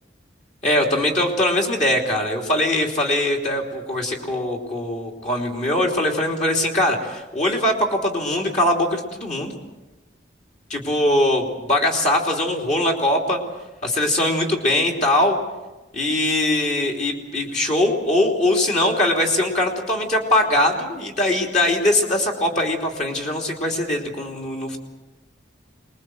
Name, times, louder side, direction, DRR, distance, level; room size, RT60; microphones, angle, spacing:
voice 1, 0.6-9.5 10.7-13.4 13.8-15.4 15.9-24.8, left 1 dB, 40° left, 1 dB, 3.2 m, -21 dB
25.5 x 21.0 x 7.8 m, 1.1 s
head